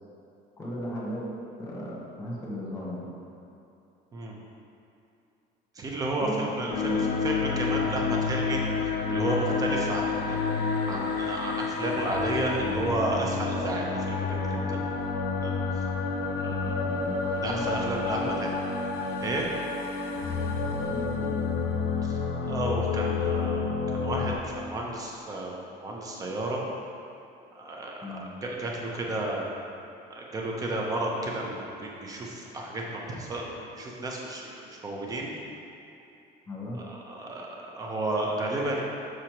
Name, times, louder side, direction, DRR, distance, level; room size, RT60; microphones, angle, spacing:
voice 1, 0.6-3.1 6.2-7.1 16.4-17.7 18.1-18.4 20.6-21.6 28.0-28.3 36.5-36.8, equal, 20° left, -5 dB, 1.1 m, -37 dB
voice 2, 5.8-8.6 9.1-10.4 10.9-14.8 15.4-15.8 16.1-16.8 17.3-18.5 19.2-19.5 22.0-26.6 27.5-28.0 28.4-29.5 30.1-35.3 36.8-38.8, right 2 dB, 20° right, -2 dB, 0.8 m, -32 dB
sound 1, 6.7-24.4, left 4 dB, 80° left, 0.7 m, -29 dB
6.3 x 6.2 x 2.9 m, 2.7 s
cardioid pair, 170°, 17 cm